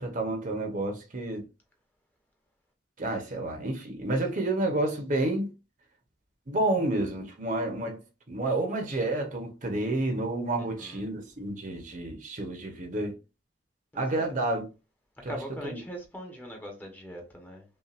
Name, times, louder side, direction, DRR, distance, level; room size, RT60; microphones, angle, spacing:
voice 1, 0.0-1.5 3.0-5.5 6.5-13.2 13.9-14.7 15.2-15.8, right 2 dB, 45° right, 1.0 m, -30 dB
voice 2, 10.6-11.0 14.1-14.3 15.3-17.6, equal, 10° left, 1.0 m, -41 dB
5.6 x 2.6 x 2.5 m
head